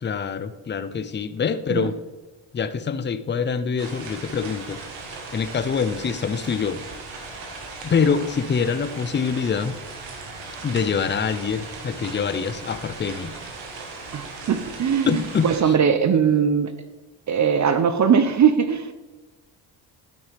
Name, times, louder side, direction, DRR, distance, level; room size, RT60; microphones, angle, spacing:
voice 1, 0.0-1.9 2.5-4.8 5.3-6.8 7.8-9.8 10.6-13.3 15.1-15.7, left 6 dB, 25° left, 11 dB, 0.6 m, -25 dB
sound 1, 3.8-15.6, right 3 dB, 90° right, 1.5 m, -38 dB
voice 2, 14.1-16.7 17.3-18.9, right 7 dB, 40° right, 11 dB, 0.6 m, -20 dB
13.0 x 6.1 x 3.4 m, 1.2 s
supercardioid pair, 65°, 45 cm